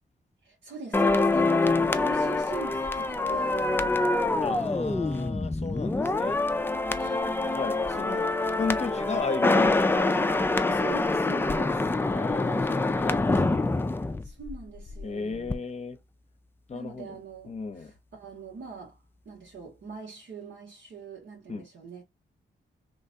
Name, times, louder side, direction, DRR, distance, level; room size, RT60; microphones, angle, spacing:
voice 1, 0.4-5.1 6.9-7.6 10.7-11.9 14.2-15.6 16.7-19.0 19.2-22.0, right 4 dB, 85° right, 1.8 m, -43 dB
sound 1, 0.9-15.1 15.3-15.6, left 2 dB, 10° left, 0.3 m, -26 dB
voice 2, 4.4-6.4 7.6-8.3 8.6-9.9 12.1-13.7 15.0-16.0 16.7-17.1 17.5-17.9 21.5-21.7, left 4 dB, 35° left, 0.7 m, -34 dB
3.4 x 3.1 x 2.7 m
wide cardioid pair, 150°, 19 cm